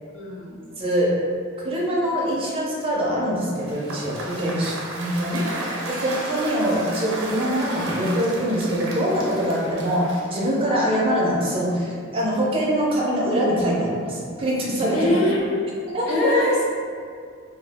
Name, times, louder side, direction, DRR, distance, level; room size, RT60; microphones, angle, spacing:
voice 1, 0.1-0.6 4.6-4.7 5.9-6.0 14.9-15.6 16.1-16.7, left 1 dB, 75° left, -4 dB, 0.6 m, -23 dB
voice 2, 0.8-1.2 1.6-15.1 15.9-16.3, equal, 30° right, -5 dB, 0.5 m, -24 dB
Cheering / Applause / Crowd, 3.6-10.7, right 1 dB, 75° right, 0.6 m, -33 dB
2.2 x 2.1 x 3.5 m, 2.2 s
head